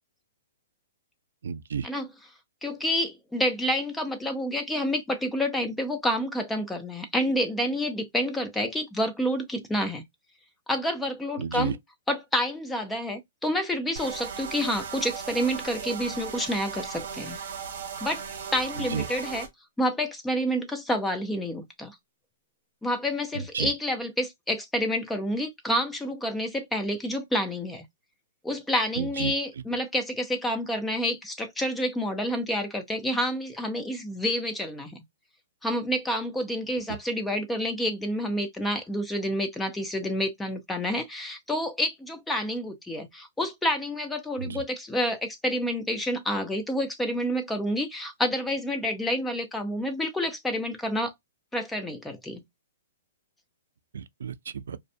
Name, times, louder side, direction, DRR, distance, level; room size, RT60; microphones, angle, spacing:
voice 1, 1.4-1.9 11.4-11.7 18.9-19.0 23.5-23.7 29.0-29.3 44.4-44.6 53.9-54.8, right 7 dB, 80° right, 0.3 m, -31 dB
voice 2, 2.6-10.1 10.7-11.8 12.1-17.4 18.0-18.2 18.5-19.5 19.8-22.0 22.8-27.8 28.4-35.0 35.6-51.1 51.5-52.4, equal, 5° left, 0.4 m, -29 dB
sound 1, 14.0-19.5, right 6 dB, 50° right, 1.1 m, -37 dB
2.4 x 2.1 x 2.6 m
hypercardioid pair, 170°, 0 cm